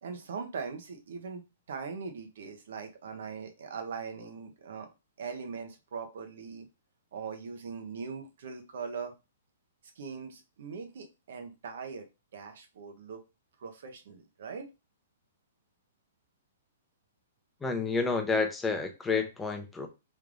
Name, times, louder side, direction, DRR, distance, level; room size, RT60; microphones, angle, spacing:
voice 1, 0.0-1.4 1.7-4.9 5.2-6.7 7.1-9.1 10.0-12.1 12.3-13.2 13.6-14.7, right 5 dB, 70° right, 0.8 m, -40 dB
voice 2, 17.6-19.9, left 4 dB, 10° left, 0.6 m, -29 dB
3.4 x 3.2 x 2.5 m
hypercardioid pair, 135°, 0 cm